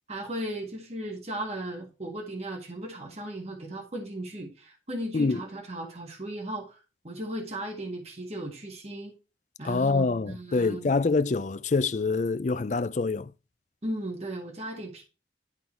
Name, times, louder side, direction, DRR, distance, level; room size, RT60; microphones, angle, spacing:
voice 1, 0.1-9.1 9.6-10.9 13.8-15.0, right 1 dB, 35° right, 1.8 m, -36 dB
voice 2, 9.6-13.3, left 4 dB, 40° left, 0.4 m, -26 dB
11.5 x 4.0 x 4.4 m
head